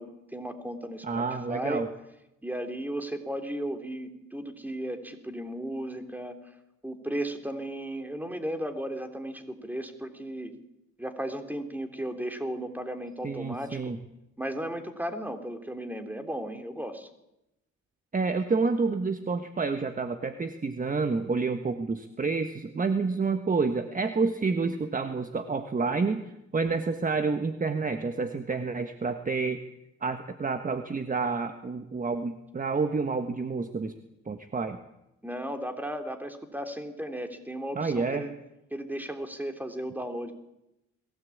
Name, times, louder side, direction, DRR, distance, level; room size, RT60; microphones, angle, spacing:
voice 1, 0.0-1.8 2.4-6.5 6.8-10.5 11.0-13.8 14.4-17.1 35.2-38.3 38.7-40.3, right 1 dB, 5° right, 6 dB, 3.4 m, -35 dB
voice 2, 1.0-1.9 13.2-14.0 18.1-26.2 26.5-29.6 30.0-33.9 34.2-34.8 37.7-38.2, right 4 dB, 25° right, 8 dB, 1.4 m, -29 dB
21.5 x 17.0 x 8.6 m, 0.88 s
cardioid pair, 90°, 30 cm